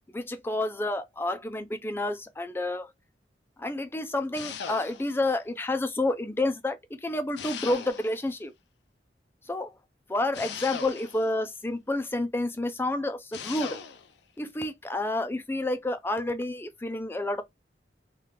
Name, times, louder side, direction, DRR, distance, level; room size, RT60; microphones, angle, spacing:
voice 1, 0.1-2.9 3.6-8.5 9.5-9.7 10.1-13.8 14.4-17.4, left 2 dB, 15° left, 0.4 m, -29 dB
sound 1, 4.3-5.3 7.4-8.3 10.3-11.4 13.3-14.1, left 6 dB, 80° left, 0.5 m, -39 dB
2.9 x 2.3 x 3.3 m
head